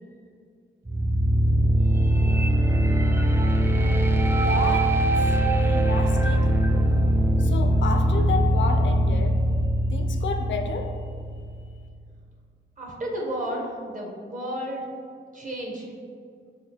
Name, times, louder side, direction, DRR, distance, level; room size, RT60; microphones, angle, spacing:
sound 1, 0.9-11.8, right 1 dB, 10° right, 0.3 m, -21 dB
voice 1, 4.3-4.9 5.5-6.7 7.4-9.4 9.9-10.9, left 4 dB, 65° left, 5 dB, 0.4 m, -31 dB
voice 2, 12.8-14.9 15.3-15.8, equal, 40° right, -2 dB, 0.9 m, -32 dB
4.1 x 3.6 x 2.8 m, 2.2 s
cardioid pair, 80°, 21 cm